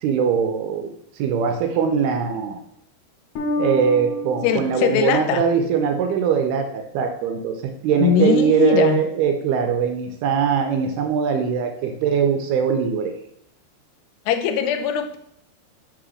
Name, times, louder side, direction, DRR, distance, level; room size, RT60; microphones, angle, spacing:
voice 1, 0.0-0.9 1.2-2.6 3.6-7.6 7.8-13.1, right 7 dB, 80° right, 5 dB, 2.4 m, -21 dB
Bass guitar, 3.4-6.4, left 2 dB, 65° left, 2.3 m, -31 dB
voice 2, 4.4-5.4 8.0-9.0 14.3-15.2, left 8 dB, 80° left, 8 dB, 2.6 m, -20 dB
5.7 x 3.8 x 6.1 m, 0.74 s
omnidirectional pair, 4.9 m